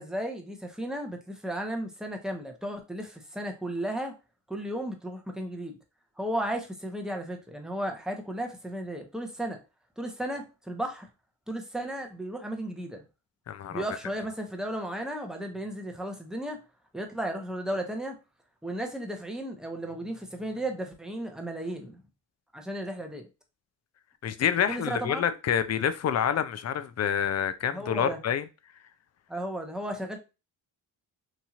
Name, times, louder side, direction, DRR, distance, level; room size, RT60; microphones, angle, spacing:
voice 1, 0.0-4.1 4.5-5.8 6.2-9.6 10.0-11.1 11.5-13.0 13.7-16.6 16.9-18.2 18.6-22.0 22.5-23.3 24.7-25.3 27.7-28.2 29.3-30.2, right 1 dB, ahead, 0.8 m, -34 dB
voice 2, 13.5-13.8 24.2-28.4, left 8 dB, 35° left, 0.4 m, -27 dB
3.0 x 2.7 x 2.4 m
supercardioid pair, 55°, 46 cm